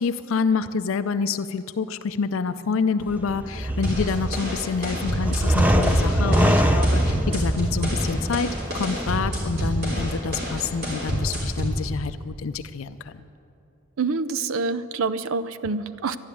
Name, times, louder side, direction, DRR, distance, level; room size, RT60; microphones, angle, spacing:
voice 1, 0.0-13.3, left 5 dB, 75° left, 11 dB, 0.4 m, -27 dB
sound 1, 3.0-11.5, right 1 dB, 5° right, 0.5 m, -25 dB
sound 2, 3.8-11.8, equal, 45° right, 3.6 m, -29 dB
voice 2, 14.0-16.2, right 4 dB, 80° right, 14 dB, 0.5 m, -26 dB
12.5 x 11.0 x 8.5 m, 2.6 s
head